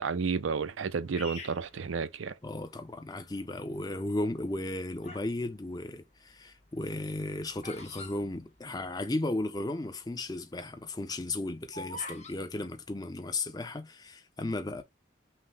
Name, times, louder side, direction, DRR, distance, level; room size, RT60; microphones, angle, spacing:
voice 1, 0.0-2.3, right 5 dB, 90° right, 0.5 m, -31 dB
Bird vocalization bird call bird song, 1.1-2.6 3.3-3.7 4.4-5.4 5.7-9.1 9.4-9.5 9.7-10.0 10.5-12.4, left 1 dB, 35° left, 1.1 m, -46 dB
voice 2, 2.4-14.8, left 2 dB, 20° left, 0.5 m, -35 dB
5.7 x 2.1 x 3.3 m
head